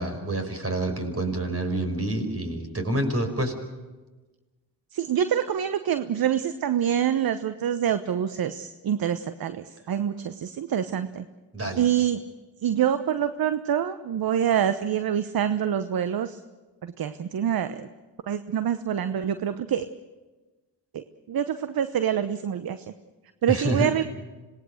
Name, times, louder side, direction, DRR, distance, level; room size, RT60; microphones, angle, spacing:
voice 1, 0.0-3.6 11.5-11.8 23.5-23.9, right 1 dB, 30° right, 6 dB, 5.2 m, -27 dB
voice 2, 4.9-11.2 11.8-12.2 12.6-16.4 16.8-17.9 18.3-19.9 20.9-22.8 23.4-24.0, right 9 dB, 50° right, 12 dB, 1.0 m, -26 dB
26.5 x 19.0 x 6.6 m, 1.2 s
hypercardioid pair, 45°, 45 cm